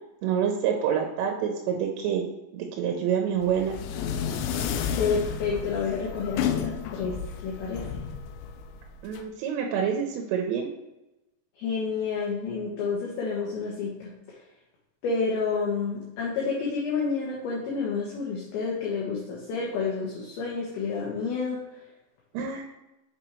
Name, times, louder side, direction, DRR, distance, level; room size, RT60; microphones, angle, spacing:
voice 1, 0.2-2.3 2.5-3.7 9.0-10.7 22.3-22.6, right 8 dB, 85° right, 2 dB, 3.4 m, -27 dB
sound 1, 3.4-9.2, left 8 dB, 85° left, 3.0 m, -32 dB
voice 2, 5.0-8.0 11.6-14.1 15.0-21.6, left 5 dB, 65° left, -5 dB, 2.7 m, -29 dB
7.3 x 6.1 x 3.1 m, 0.98 s
omnidirectional pair, 5.6 m